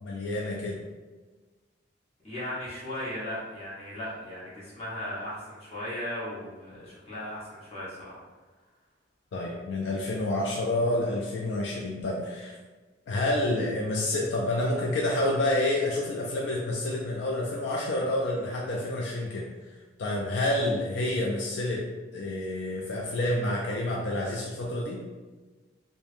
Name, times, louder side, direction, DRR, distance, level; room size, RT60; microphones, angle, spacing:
voice 1, 0.0-0.8 9.3-12.6 13.1-19.4 20.0-21.9 22.1-25.0, left 1 dB, 70° left, -2 dB, 0.3 m, -28 dB
voice 2, 2.2-8.2, left 1 dB, 35° left, -8 dB, 1.0 m, -37 dB
3.1 x 2.1 x 2.5 m, 1.3 s
head